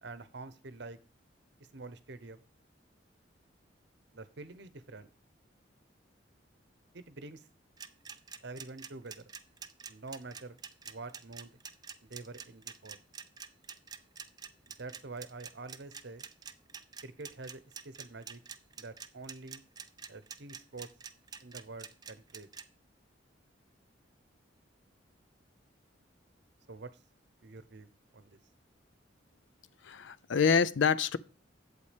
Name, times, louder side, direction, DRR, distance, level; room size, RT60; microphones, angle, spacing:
voice 1, 0.0-1.0 1.7-2.4 4.1-5.1 6.9-7.5 8.4-9.2 9.9-10.6 10.9-11.5 12.1-13.0 14.7-16.3 17.0-18.4 18.8-19.6 20.1-20.9 21.4-22.5 26.7-26.9 27.4-28.4, right 3 dB, 65° right, 0.9 m, -46 dB
sound 1, 7.8-22.6, right 6 dB, 20° right, 0.5 m, -46 dB
voice 2, 29.8-31.2, left 6 dB, 75° left, 0.5 m, -26 dB
8.3 x 7.9 x 3.4 m
head